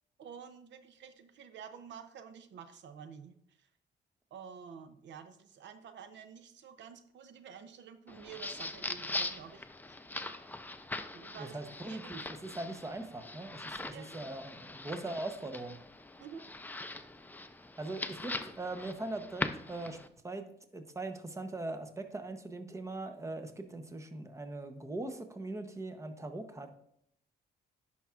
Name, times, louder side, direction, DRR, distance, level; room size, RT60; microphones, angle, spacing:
voice 1, 0.2-3.7 4.3-10.0 11.1-11.6 11.9-12.1 13.9-14.1 16.2-16.4, right 7 dB, 65° right, 10 dB, 0.6 m, -50 dB
sound 1, 8.1-20.1, left 2 dB, 10° left, 0.5 m, -41 dB
voice 2, 11.4-15.8 17.8-20.0 20.2-20.5 20.7-26.7, right 2 dB, 15° right, 8 dB, 0.8 m, -41 dB
10.0 x 5.7 x 2.4 m, 0.73 s
cardioid pair, 90°, 20 cm